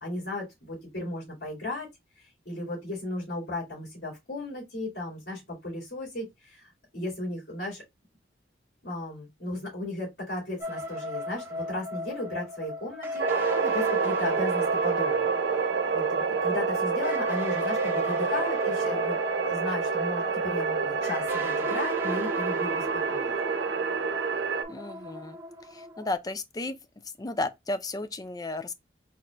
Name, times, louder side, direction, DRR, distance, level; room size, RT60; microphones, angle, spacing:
voice 1, 0.0-1.9 2.2-7.8 8.8-15.3 15.6-19.2 19.5-23.3, left 2 dB, 70° left, 2.7 m, -35 dB
sound 1, 10.6-26.1, equal, 10° right, 1.0 m, -37 dB
sound 2, 13.2-24.6, right 5 dB, 70° right, 0.6 m, -28 dB
voice 2, 24.7-25.4 25.6-26.8 27.2-28.7, left 2 dB, 20° left, 0.4 m, -33 dB
4.2 x 4.1 x 2.4 m
head